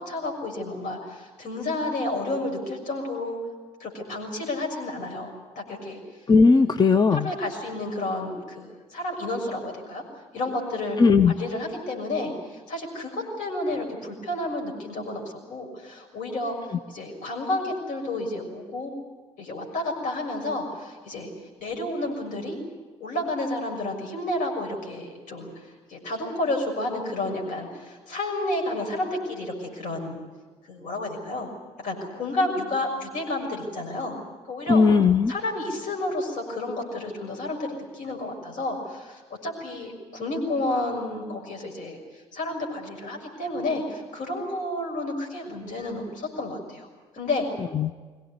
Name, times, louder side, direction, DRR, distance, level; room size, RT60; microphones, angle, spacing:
voice 1, 0.0-3.4 3.8-6.0 6.5-6.7 7.1-10.0 10.3-11.0 11.3-16.6 16.9-18.9 19.4-21.3 21.6-22.6 23.0-30.2 30.7-31.5 31.8-34.2 34.5-34.8 35.3-42.0 42.3-46.9 47.1-47.5, left 2 dB, 55° left, 1 dB, 6.4 m, -31 dB
voice 2, 6.3-7.3 11.0-11.3 34.7-35.3 47.7-48.0, left 4 dB, 25° left, 10 dB, 0.9 m, -17 dB
23.0 x 18.0 x 9.5 m, 1.4 s
figure-of-eight pair, 50°, 16 cm